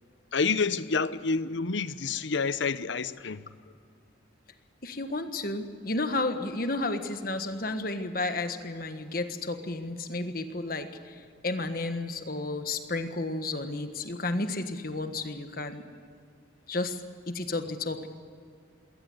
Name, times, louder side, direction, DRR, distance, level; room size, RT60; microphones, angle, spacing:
voice 1, 0.3-3.4, left 4 dB, 70° left, 0.8 m, -28 dB
voice 2, 4.8-15.8 16.7-17.0 17.3-18.1, left 2 dB, 50° left, 1.5 m, -32 dB
21.0 x 18.0 x 8.0 m
head